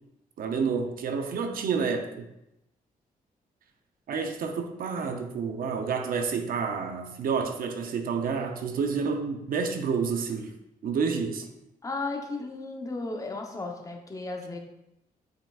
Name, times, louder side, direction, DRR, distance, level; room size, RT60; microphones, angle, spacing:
voice 1, 0.4-2.3 4.1-10.5 10.8-11.5, right 5 dB, 70° right, 0.7 m, -29 dB
voice 2, 11.8-14.6, left 3 dB, 20° left, 0.8 m, -34 dB
7.5 x 5.6 x 2.4 m
cardioid pair, 130°, 15 cm